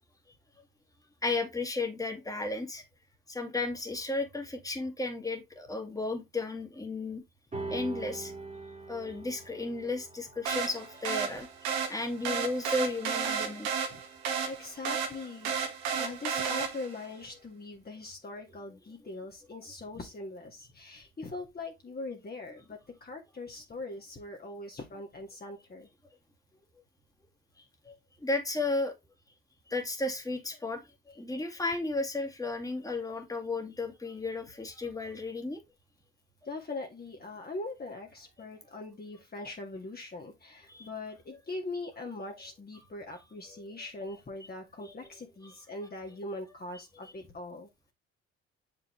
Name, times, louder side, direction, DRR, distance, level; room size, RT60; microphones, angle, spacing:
voice 1, 1.2-2.8 3.3-7.2 7.7-8.3 8.9-11.5 11.9-13.8 15.9-16.0 27.9-28.0 28.2-28.9 29.7-30.8 31.1-35.6 40.7-40.9 42.7-42.8 43.1-43.2 43.5-43.7 44.8-45.1 45.4-45.5 47.0-47.1, left 2 dB, 10° left, 2.1 m, -34 dB
sound 1, 7.5-14.2, right 3 dB, 25° right, 2.4 m, -44 dB
sound 2, 10.5-17.1, right 6 dB, 85° right, 1.6 m, -33 dB
voice 2, 14.5-15.5 16.0-25.9 36.5-47.7, left 2 dB, 30° left, 1.9 m, -41 dB
6.9 x 5.3 x 3.1 m
hypercardioid pair, 55°, 30 cm